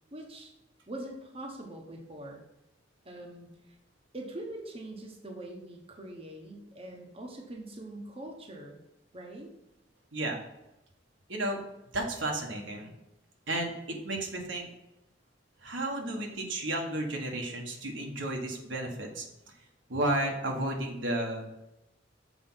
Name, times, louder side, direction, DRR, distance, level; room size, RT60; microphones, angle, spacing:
voice 1, 0.1-0.5 0.9-2.4 3.0-3.8 4.1-8.8 9.1-9.5, right 1 dB, 30° right, 0 dB, 1.1 m, -43 dB
voice 2, 11.3-11.6 11.9-12.9 13.5-13.7 14.0-14.7 15.6-19.2 19.9-21.5, right 1 dB, 80° right, 1 dB, 1.5 m, -32 dB
7.0 x 4.7 x 5.7 m, 0.92 s
head